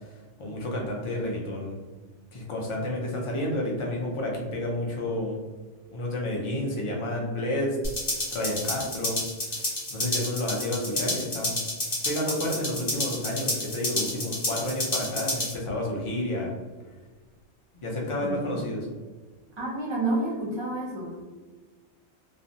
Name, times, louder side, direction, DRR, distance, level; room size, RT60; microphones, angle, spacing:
voice 1, 0.4-1.8 2.3-5.4 5.9-7.8 8.3-9.2 9.9-11.6 12.0-16.5 17.7-18.9, left 1 dB, 55° left, -2 dB, 0.3 m, -30 dB
sound 1, 7.8-15.5, left 1 dB, 25° left, 0.9 m, -30 dB
voice 2, 18.2-18.6 19.6-21.2, right 2 dB, 30° right, -3 dB, 0.6 m, -30 dB
2.5 x 2.0 x 2.6 m, 1.3 s
omnidirectional pair, 1.2 m